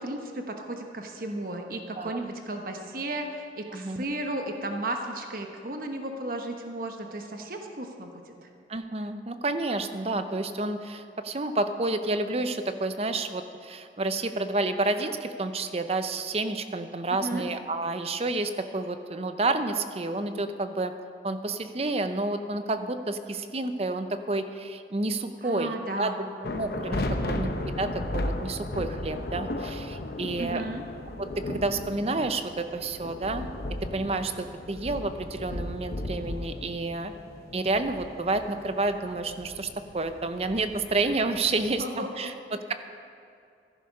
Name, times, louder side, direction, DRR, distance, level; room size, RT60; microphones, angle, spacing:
voice 1, 0.0-8.1 8.4-8.5 17.2-17.5 25.4-26.3 27.2-27.4 30.4-30.8 41.5-42.3, right 1 dB, 50° right, 4 dB, 1.1 m, -34 dB
voice 2, 3.7-4.0 8.7-20.9 21.2-26.1 26.4-30.6 31.2-33.5 33.9-37.1 37.5-42.7, right 2 dB, 35° right, 9 dB, 0.6 m, -30 dB
sound 1, 26.4-41.8, left 1 dB, 60° left, 0.8 m, -35 dB
14.0 x 11.0 x 5.4 m, 2.5 s
head